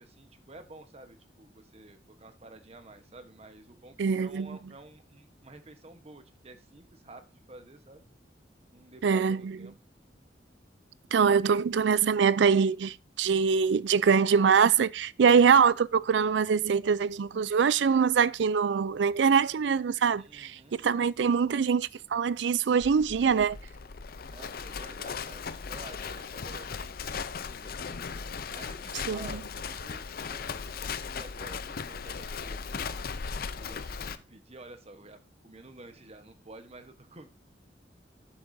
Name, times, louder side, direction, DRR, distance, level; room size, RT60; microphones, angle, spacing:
voice 1, 0.0-8.0 8.7-9.7 20.2-20.8 24.3-28.2 28.5-33.1 33.6-35.2 35.4-37.3, right 2 dB, 35° right, 1.1 m, -51 dB
voice 2, 4.0-4.6 9.0-9.7 11.1-23.6 29.1-29.4, right 6 dB, 90° right, 0.4 m, -24 dB
Livestock farm animals working animals, 22.8-34.2, left 5 dB, 55° left, 0.6 m, -37 dB
12.5 x 7.3 x 2.7 m
head